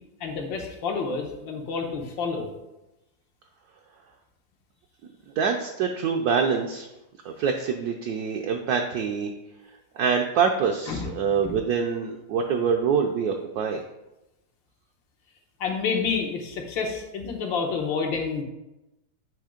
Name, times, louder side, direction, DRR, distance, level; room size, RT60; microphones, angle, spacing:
voice 1, 0.2-2.5 10.9-11.1 11.4-11.5 15.6-18.4, left 5 dB, 85° left, 1 dB, 1.8 m, -29 dB
voice 2, 5.4-6.9 7.2-9.3 10.0-13.8, right 6 dB, 70° right, 3 dB, 1.0 m, -25 dB
9.2 x 3.1 x 5.0 m, 0.96 s
omnidirectional pair, 2.0 m